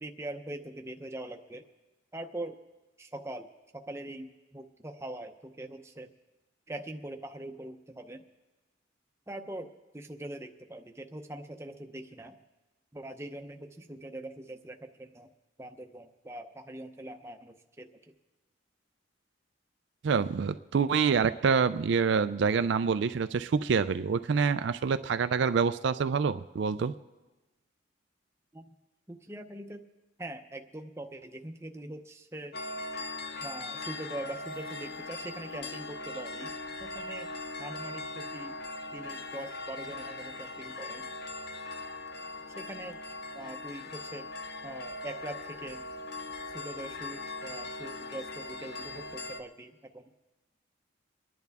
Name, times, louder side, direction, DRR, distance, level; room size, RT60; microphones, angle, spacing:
voice 1, 0.0-1.6 2.1-2.6 3.0-3.5 3.7-6.1 6.7-8.2 9.3-12.4 12.9-15.3 15.6-17.9 28.5-28.7 29.1-29.8 30.2-32.5 33.4-37.3 37.6-38.6 38.9-41.1 42.6-43.0 43.3-44.3 44.6-45.8 46.5-50.0, right 1 dB, 15° right, 5 dB, 0.7 m, -42 dB
voice 2, 20.0-26.9, right 5 dB, 65° right, 11 dB, 0.4 m, -26 dB
sound 1, 32.5-49.4, left 2 dB, 55° left, 0.8 m, -40 dB
25.0 x 10.5 x 3.5 m, 1.1 s
head